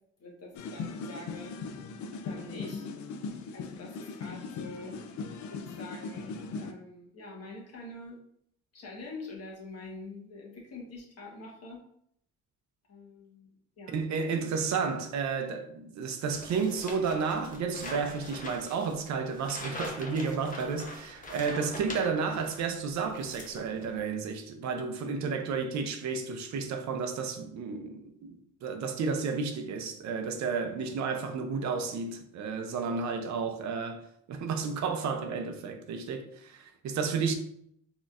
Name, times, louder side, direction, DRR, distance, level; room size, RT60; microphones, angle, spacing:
voice 1, 0.2-1.5 2.2-2.9 3.5-4.9 5.5-8.2 8.7-11.8 12.9-13.5 13.8-14.0, left 2 dB, 55° left, 1.3 m, -45 dB
sound 1, 0.5-6.7, left 4 dB, 75° left, 0.5 m, -39 dB
voice 2, 13.9-28.3 28.6-34.0 34.3-37.3, right 5 dB, 65° right, 0.6 m, -32 dB
sound 2, 16.3-22.7 23.0-24.0, left 2 dB, 25° left, 0.8 m, -43 dB
4.1 x 3.0 x 2.5 m
cardioid pair, 90°, 30 cm